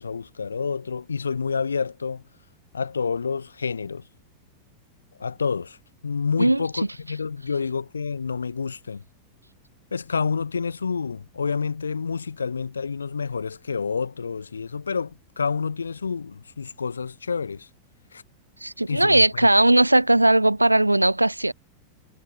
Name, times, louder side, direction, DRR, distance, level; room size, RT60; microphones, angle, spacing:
voice 1, 0.0-2.2 2.7-4.0 5.2-5.8 6.0-9.0 9.9-17.7 18.1-18.2 18.9-19.5, left 5 dB, 75° left, 2.6 m, -28 dB
voice 2, 18.6-21.5, right 1 dB, 85° right, 1.5 m, -18 dB
figure-of-eight pair, 90°, 0 cm